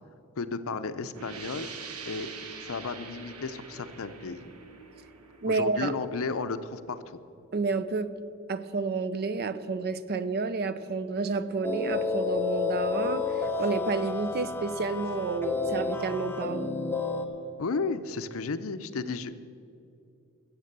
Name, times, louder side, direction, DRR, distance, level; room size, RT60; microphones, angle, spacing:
voice 1, 0.4-1.7 2.0-4.5 5.5-7.2 17.6-19.3, left 4 dB, 65° left, 12 dB, 0.6 m, -33 dB
sound 1, 1.1-6.6, right 5 dB, 80° right, 1.1 m, -44 dB
voice 2, 5.4-5.9 7.5-8.1 8.5-13.2 13.6-16.7, right 4 dB, 45° right, 14 dB, 0.5 m, -30 dB
sound 2, 11.6-17.3, left 4 dB, 10° left, 1.0 m, -30 dB
15.0 x 7.5 x 6.7 m, 2.6 s
head